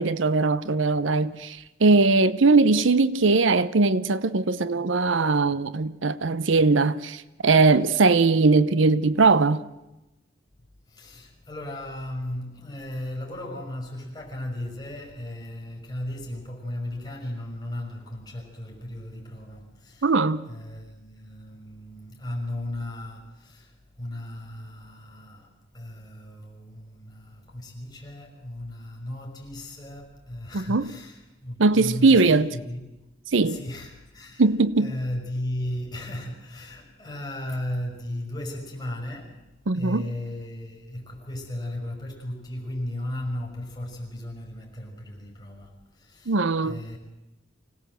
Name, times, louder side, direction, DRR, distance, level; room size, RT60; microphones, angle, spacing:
voice 1, 0.0-9.6 20.0-20.5 30.5-30.9 31.6-32.5 33.3-33.6 34.4-34.9 39.7-40.0 46.3-46.8, right 3 dB, 70° right, 0.7 m, -20 dB
voice 2, 10.9-20.1 20.5-33.0 33.4-34.4 34.8-39.5 39.7-46.4 46.6-47.0, left 1 dB, 20° left, 5.6 m, -36 dB
25.5 x 18.0 x 7.8 m
head